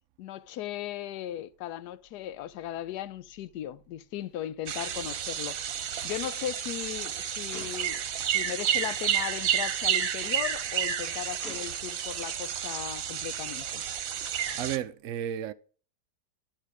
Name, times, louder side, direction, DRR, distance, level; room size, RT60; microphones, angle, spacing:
voice 1, 0.2-13.8, left 12 dB, 70° left, 1.1 m, -37 dB
sound 1, 4.7-14.8, right 9 dB, 55° right, 1.2 m, -31 dB
Gunshot gunfire, 5.2-5.3 5.5-5.7 7.5-8.5 9.3-9.5 11.4-12.3, left 2 dB, 50° left, 2.0 m, -48 dB
voice 2, 14.6-15.5, right 10 dB, 75° right, 0.7 m, -33 dB
12.0 x 6.6 x 4.8 m
omnidirectional pair, 2.0 m